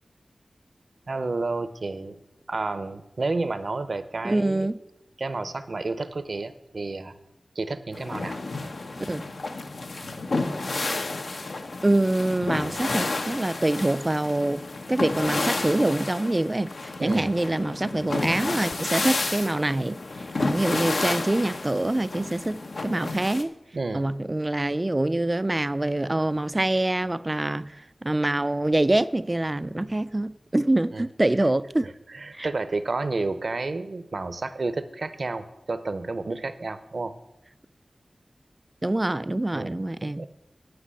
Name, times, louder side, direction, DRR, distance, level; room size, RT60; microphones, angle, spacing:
voice 1, 1.1-2.2 2.5-4.7 5.2-7.1 7.6-8.4 17.0-17.3 23.7-24.1 30.9-31.0 31.8-37.1 39.5-39.7 40.0-40.3, right 3 dB, 60° right, 0.7 m, -31 dB
voice 2, 4.2-4.8 9.1-9.3 11.8-14.6 14.9-23.5 23.9-31.9 32.3-32.5 38.8-40.3, right 1 dB, 25° right, 0.3 m, -25 dB
sound 1, 7.9-23.4, left 2 dB, 75° left, 0.9 m, -31 dB
10.0 x 6.0 x 8.2 m
wide cardioid pair, 85°, 0 cm